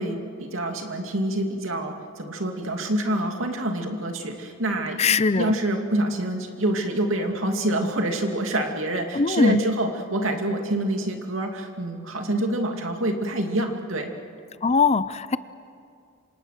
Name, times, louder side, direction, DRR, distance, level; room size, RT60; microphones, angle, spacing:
voice 1, 0.0-14.1, right 1 dB, 80° right, 3 dB, 2.5 m, -26 dB
voice 2, 5.0-5.6 9.1-9.6 14.6-15.4, left 4 dB, 35° left, 15 dB, 0.6 m, -21 dB
27.0 x 26.0 x 6.7 m, 2.5 s
head